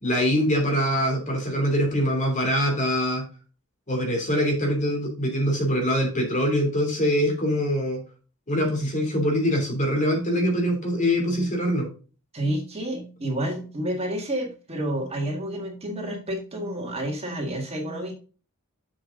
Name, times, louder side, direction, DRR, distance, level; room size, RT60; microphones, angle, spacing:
voice 1, 0.0-3.2 3.9-8.0 8.5-11.9, equal, 35° left, 2 dB, 3.0 m, -23 dB
voice 2, 12.3-18.1, right 1 dB, 30° right, 1 dB, 1.9 m, -29 dB
7.6 x 6.9 x 3.8 m, 0.35 s
head